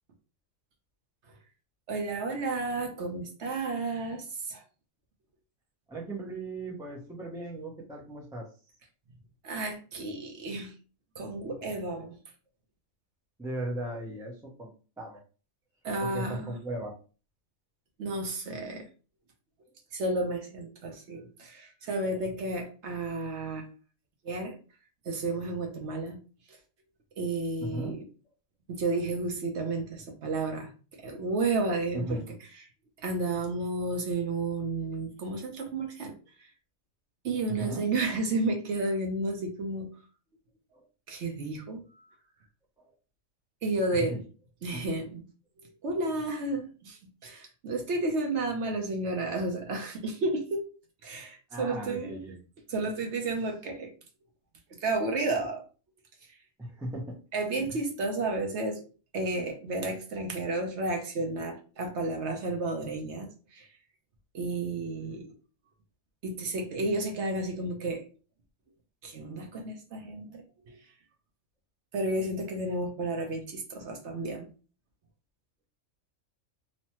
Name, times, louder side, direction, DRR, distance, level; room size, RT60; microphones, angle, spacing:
voice 1, 1.9-4.6 9.4-10.7 11.2-12.2 15.8-16.6 18.0-18.9 19.9-23.7 24.2-24.5 25.1-26.2 27.2-28.0 28.7-32.2 33.0-36.1 36.4-36.5 37.2-39.9 41.1-41.8 43.6-44.2 44.6-45.2 45.6-50.6 51.0-52.2 52.7-53.9 54.7-55.6 57.3-58.8 59.1-63.7 64.3-65.3 66.2-68.0 69.0-70.8 71.9-74.5, right 2 dB, 65° right, 0.9 m, -32 dB
voice 2, 5.9-8.5 13.4-15.2 16.0-16.9 19.6-19.7 27.6-28.0 31.9-32.4 37.5-37.9 40.7-40.9 44.1-44.2 44.7-44.8 51.5-52.3 56.6-57.2 57.6-57.8, right 1 dB, 5° right, 0.3 m, -37 dB
3.0 x 2.1 x 2.8 m
omnidirectional pair, 1.4 m